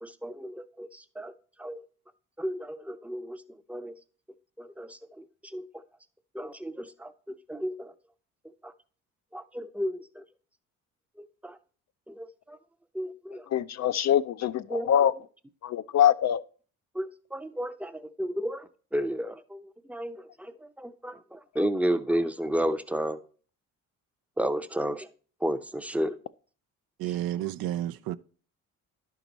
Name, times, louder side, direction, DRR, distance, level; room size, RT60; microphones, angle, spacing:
voice 1, 0.0-1.3 1.6-1.8 2.4-3.4 3.7-4.0 4.6-5.7 6.3-7.9 8.6-8.7 9.3-10.2 11.2-11.6 12.1-12.6 12.9-13.5 14.7-14.9 16.9-23.2 24.4-25.1 25.4-26.2, equal, 5° right, 0.6 m, -32 dB
voice 2, 13.5-15.1 15.6-16.4, left 10 dB, 45° left, 0.4 m, -24 dB
voice 3, 27.0-28.2, right 13 dB, 65° right, 0.5 m, -31 dB
11.0 x 4.7 x 4.0 m
supercardioid pair, 60°, 38 cm